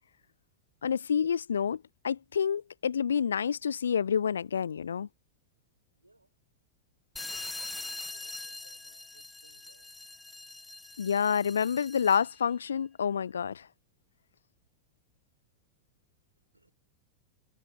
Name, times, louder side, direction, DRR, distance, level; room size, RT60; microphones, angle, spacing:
voice 1, 0.8-5.1 11.0-13.7, left 7 dB, 70° left, 0.3 m, -28 dB
voice 2, 5.9-6.4 7.2-10.0 16.5-16.7, right 2 dB, 85° right, 5.1 m, -63 dB
sound 1, 7.2-12.4, left 2 dB, 10° left, 2.0 m, -43 dB
figure-of-eight pair, 90°, 0 cm